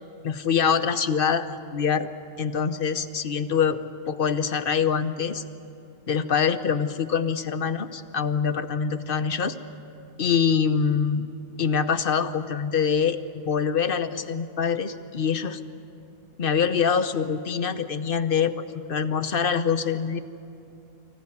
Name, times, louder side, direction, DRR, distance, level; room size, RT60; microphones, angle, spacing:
voice 1, 0.2-2.1 2.4-3.8 4.1-5.4 6.1-9.6 10.2-11.3 11.6-15.6 16.4-20.2, left 6 dB, 60° left, 10 dB, 1.0 m, -24 dB
24.0 x 15.5 x 9.8 m, 2.6 s
omnidirectional pair, 1.1 m